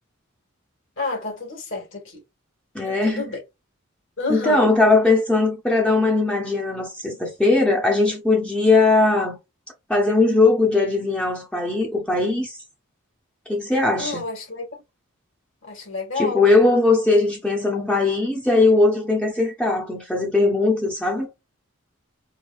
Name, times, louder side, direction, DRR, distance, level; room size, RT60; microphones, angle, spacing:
voice 1, 1.0-2.2 2.8-3.4 4.2-4.7 14.0-14.7 15.6-16.4, left 3 dB, 60° left, 2.0 m, -29 dB
voice 2, 2.7-3.2 4.3-9.4 9.9-12.6 13.5-14.2 16.2-21.3, left 3 dB, 5° left, 0.7 m, -19 dB
4.7 x 2.6 x 2.5 m
head